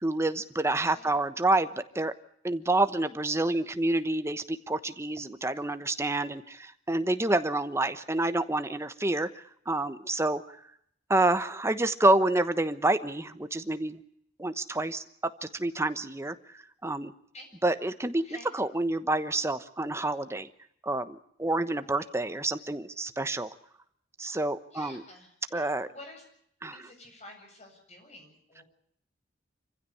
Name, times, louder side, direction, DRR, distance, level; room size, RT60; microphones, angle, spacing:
voice 1, 0.0-1.7 1.9-2.1 2.4-9.3 9.7-10.4 11.1-14.0 14.4-15.0 15.4-16.3 16.8-17.1 17.6-18.3 18.5-20.5 20.8-23.5 24.2-25.0 25.5-25.9 26.6-26.7, right 2 dB, 15° right, 10 dB, 1.1 m, -28 dB
voice 2, 18.1-18.5 24.7-26.2 26.7-28.6, left 1 dB, 40° left, 3 dB, 7.8 m, -49 dB
26.5 x 15.5 x 8.6 m, 0.70 s
head